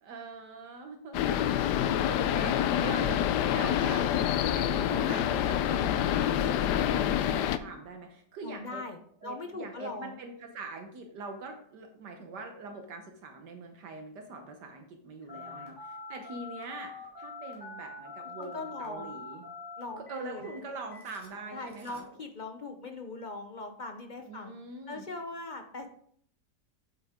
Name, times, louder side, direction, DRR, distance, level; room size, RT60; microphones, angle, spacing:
voice 1, 0.0-1.2 1.5-3.2 3.5-4.1 4.5-8.8 9.2-19.4 20.0-22.0 24.3-25.1, right 3 dB, 75° right, 4 dB, 1.5 m, -43 dB
sound 1, 1.1-7.6, left 10 dB, 75° left, 1.2 m, -27 dB
voice 2, 2.0-2.7 8.4-10.2 15.3-15.7 18.2-19.2 19.8-20.5 21.5-24.5 24.9-25.9, left 3 dB, 50° left, 5 dB, 0.5 m, -41 dB
Telephone, 15.3-22.1, left 3 dB, 15° left, 3.1 m, -45 dB
8.7 x 8.1 x 3.6 m, 0.63 s
omnidirectional pair, 1.8 m